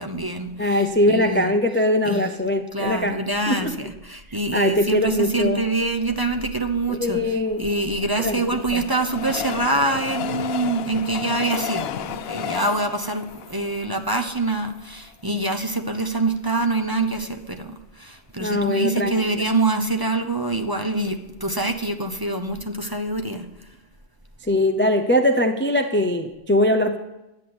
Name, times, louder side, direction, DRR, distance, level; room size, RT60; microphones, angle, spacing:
voice 1, 0.0-1.6 2.0-2.3 2.7-23.4, right 2 dB, 20° right, 4 dB, 0.8 m, -25 dB
voice 2, 0.6-3.2 3.5-3.8 4.5-5.7 6.9-7.6 8.2-8.4 8.7-8.8 18.4-19.1 24.4-27.0, left 1 dB, 15° left, 6 dB, 0.5 m, -21 dB
Train, 7.5-14.7 15.3-15.4 15.6-15.7, left 10 dB, 70° left, 0.8 m, -32 dB
10.5 x 8.5 x 7.8 m, 0.98 s
omnidirectional pair, 1.1 m